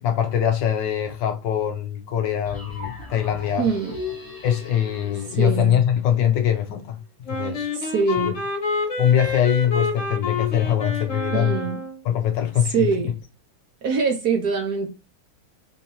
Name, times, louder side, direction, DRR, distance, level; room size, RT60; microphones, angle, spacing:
voice 1, 0.0-3.7 4.4-7.0 7.3-7.7 8.2-8.3 9.0-11.6 12.0-12.9, left 10 dB, 75° left, 1.1 m, -22 dB
sound 1, 2.4-6.4, left 3 dB, 25° left, 0.4 m, -37 dB
voice 2, 3.6-4.0 5.3-5.8 7.7-8.4 11.3-11.8 12.7-13.1 13.8-14.9, right 5 dB, 65° right, 1.0 m, -23 dB
Wind instrument woodwind instrument, 7.3-12.0, left 3 dB, 40° left, 1.4 m, -28 dB
4.5 x 2.8 x 2.7 m
omnidirectional pair, 2.4 m